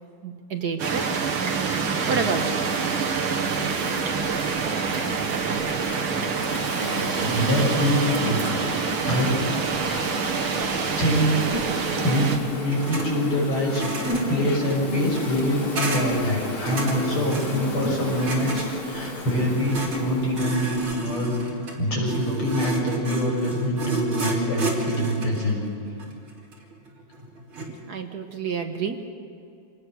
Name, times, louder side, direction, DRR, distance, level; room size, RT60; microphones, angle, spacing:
voice 1, 0.2-1.0 2.1-2.6 27.9-29.0, right 5 dB, 55° right, 6 dB, 1.6 m, -28 dB
sound 1, 0.8-12.4, right 5 dB, 75° right, 2.4 m, -26 dB
Insect, 3.5-20.9, left 1 dB, 35° left, 2.5 m, -34 dB
voice 2, 7.2-8.4 8.7-8.8 9.1-9.3 11.0-11.3 12.0-13.8 14.3-21.4 21.8-25.6, equal, 85° left, -3 dB, 7.2 m, -24 dB
sound 2, 12.7-13.1 13.4-27.8, right 2 dB, 90° right, 3.9 m, -32 dB
26.0 x 19.5 x 6.4 m, 2.5 s
omnidirectional pair, 2.3 m